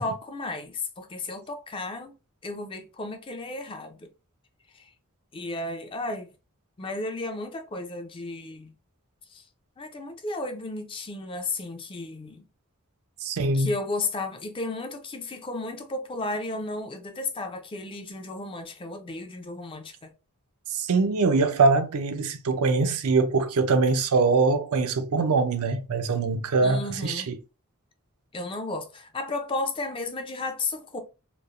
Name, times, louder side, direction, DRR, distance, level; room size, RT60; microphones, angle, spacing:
voice 1, 0.0-2.1 2.4-4.1 4.7-4.9 5.3-6.3 6.8-8.7 9.3-9.4 9.8-12.4 13.5-20.1 26.6-27.3 28.3-31.0, left 2 dB, 25° left, 0.4 m, -33 dB
voice 2, 13.2-13.7 20.7-27.4, right 4 dB, 80° right, 0.5 m, -23 dB
3.0 x 2.0 x 2.4 m
head